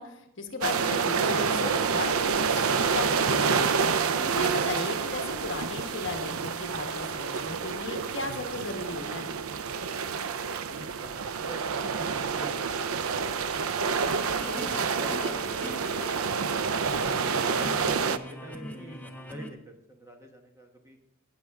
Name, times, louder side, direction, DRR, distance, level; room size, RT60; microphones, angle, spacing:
voice 1, 0.0-9.3 17.6-17.8, left 3 dB, 60° left, 4 dB, 1.4 m, -36 dB
sound 1, 0.6-18.2, right 5 dB, 80° right, 0.5 m, -28 dB
voice 2, 10.7-14.0 14.4-16.6 17.3-21.0, equal, 15° right, 3 dB, 1.1 m, -47 dB
sound 2, 13.7-16.4 16.7-19.5, left 1 dB, 5° left, 0.8 m, -42 dB
18.0 x 6.6 x 3.6 m, 0.83 s
head